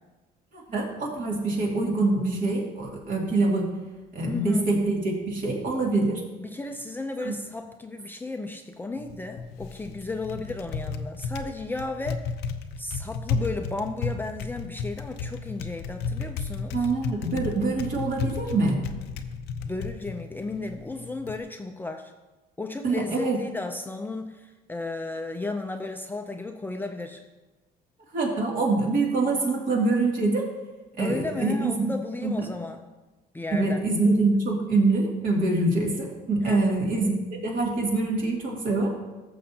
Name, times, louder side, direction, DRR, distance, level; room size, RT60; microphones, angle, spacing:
voice 1, 0.5-3.7 4.1-6.2 7.2-7.3 16.7-18.8 22.8-23.4 28.1-30.5 31.0-31.9 32.2-32.3 33.5-37.1 37.4-39.0, right 3 dB, 55° right, -2 dB, 2.5 m, -25 dB
voice 2, 4.3-4.8 6.4-12.2 12.8-16.9 19.6-22.1 22.6-27.2 31.0-32.9 33.3-33.8 36.4-36.7, left 3 dB, 10° left, 5 dB, 0.5 m, -34 dB
Typing, 9.0-21.4, left 5 dB, 85° left, 0.6 m, -34 dB
14.5 x 6.8 x 2.8 m, 1.2 s
cardioid pair, 110°, 17 cm